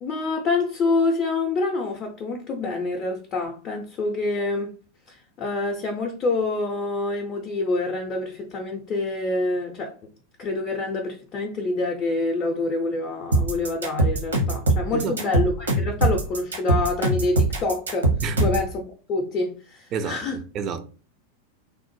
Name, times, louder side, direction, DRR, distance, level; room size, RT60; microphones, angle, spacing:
voice 1, 0.0-4.8 5.1-10.0 10.4-18.1 18.4-18.8 19.1-20.4, left 3 dB, 30° left, 0.5 m, -26 dB
sound 1, 13.3-18.7, right 2 dB, 75° right, 0.9 m, -22 dB
voice 2, 19.9-20.9, right 6 dB, 35° right, 0.3 m, -29 dB
3.2 x 2.0 x 3.0 m
figure-of-eight pair, 90°, 0 cm